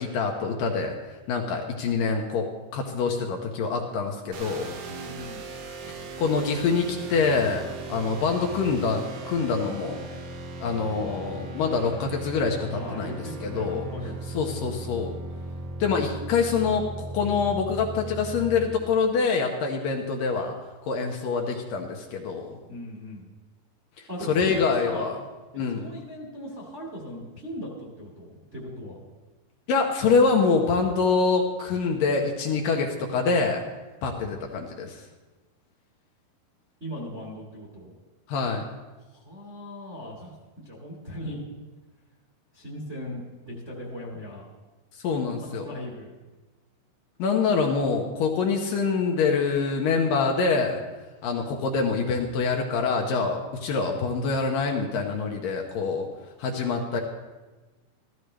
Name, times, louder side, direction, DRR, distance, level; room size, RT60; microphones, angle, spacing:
voice 1, 0.0-2.5 2.7-4.8 5.9-7.6 7.9-10.1 10.6-13.9 14.3-15.1 15.8-20.6 20.8-22.6 24.0-25.2 25.5-25.9 29.7-33.6 34.0-35.1 38.3-38.6 44.9-45.7 47.2-50.8 51.2-56.1 56.4-57.0, left 5 dB, 75° left, 1 dB, 2.4 m, -25 dB
sound 1, 4.3-18.7, right 2 dB, 85° right, 3.2 m, -38 dB
voice 2, 4.9-5.5 12.8-14.1 22.7-23.3 24.1-25.1 25.7-29.0 36.8-37.9 39.1-40.3 40.6-41.5 42.5-44.4 45.4-46.1, equal, 30° right, -3 dB, 1.5 m, -38 dB
14.5 x 14.0 x 3.3 m, 1.2 s
omnidirectional pair, 4.5 m